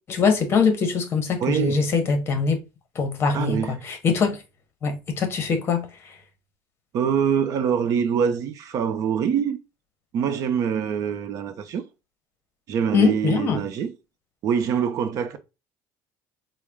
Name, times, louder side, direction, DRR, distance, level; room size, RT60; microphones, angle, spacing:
voice 1, 0.1-2.6 3.0-4.4 4.8-5.9 12.9-13.6, left 5 dB, 35° left, 0.9 m, -22 dB
voice 2, 1.4-1.8 3.3-3.8 6.9-9.6 10.1-11.8 12.7-13.9 14.4-15.4, right 7 dB, 55° right, 0.6 m, -24 dB
4.0 x 2.1 x 3.5 m
cardioid pair, 130°, 7 cm